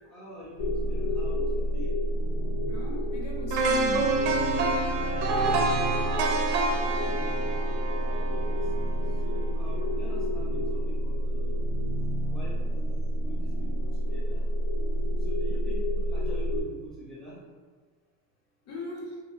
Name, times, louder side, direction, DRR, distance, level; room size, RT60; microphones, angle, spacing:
voice 1, 0.1-1.9 5.0-6.1 8.0-8.5 9.2-11.7 12.3-13.0 13.2-14.4 15.2-17.4, equal, ahead, -9 dB, 0.4 m, -45 dB
sound 1, 0.6-16.6, equal, 60° left, 0.5 m, -29 dB
voice 2, 2.7-4.2 18.7-19.2, left 2 dB, 85° left, -2 dB, 0.8 m, -39 dB
sound 2, 3.5-9.5 9.9-10.0, right 3 dB, 60° right, 0.5 m, -28 dB
3.1 x 2.0 x 2.4 m, 1.4 s
cardioid pair, 175°, 39 cm